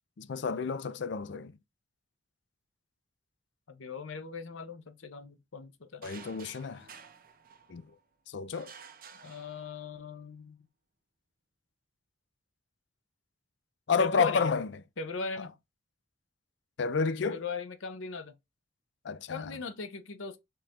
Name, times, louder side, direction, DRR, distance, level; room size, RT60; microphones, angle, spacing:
voice 1, 0.2-1.5 6.0-6.8 7.7-7.8 8.3-8.7 13.9-14.7 16.8-17.4 19.1-19.5, left 5 dB, 65° left, 0.4 m, -30 dB
voice 2, 3.7-6.1 9.2-10.7 14.0-14.6 15.0-15.5 17.2-18.3 19.3-20.4, left 4 dB, 90° left, 0.8 m, -39 dB
sound 1, 6.0-8.0 8.5-10.1, right 6 dB, 45° right, 0.8 m, -52 dB
4.6 x 3.1 x 3.6 m
head